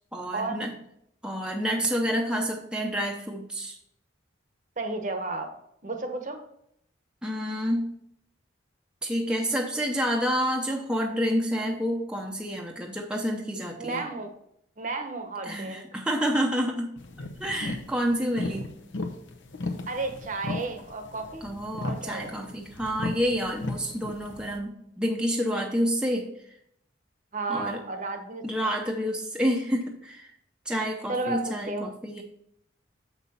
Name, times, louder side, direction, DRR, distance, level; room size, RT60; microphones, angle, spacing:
voice 1, 0.1-0.7 1.2-3.8 7.2-7.9 9.0-14.1 15.4-16.9 17.4-18.7 21.4-26.3 27.5-27.8 28.4-30.3 30.7-32.2, equal, 5° right, 0 dB, 0.6 m, -28 dB
voice 2, 4.8-5.5 5.8-6.4 13.8-14.3 14.8-15.9 19.9-21.4 21.8-22.3 27.3-28.7 31.1-31.9, right 3 dB, 40° right, 6 dB, 0.9 m, -33 dB
sound 1, 17.0-24.6, left 2 dB, 75° left, 0.9 m, -36 dB
7.1 x 5.7 x 4.2 m, 0.73 s
head